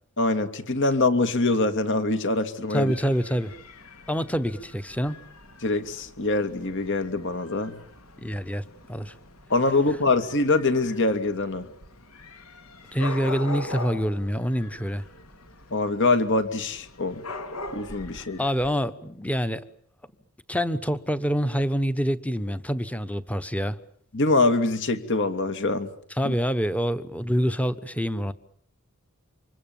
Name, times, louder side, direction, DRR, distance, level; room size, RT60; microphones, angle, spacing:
voice 1, 0.2-2.9 5.6-7.8 9.5-11.7 15.7-17.2 17.7-18.4 24.1-25.9 26.2-26.3, left 2 dB, 55° left, 2.4 m, -24 dB
voice 2, 2.7-3.5 4.1-5.2 8.2-8.6 8.9-9.1 12.9-15.0 18.4-19.7 20.5-23.8 26.2-28.3, equal, 5° left, 1.1 m, -26 dB
Dog / Cat, 2.8-18.7, left 2 dB, 75° left, 3.8 m, -42 dB
28.5 x 25.5 x 7.3 m
head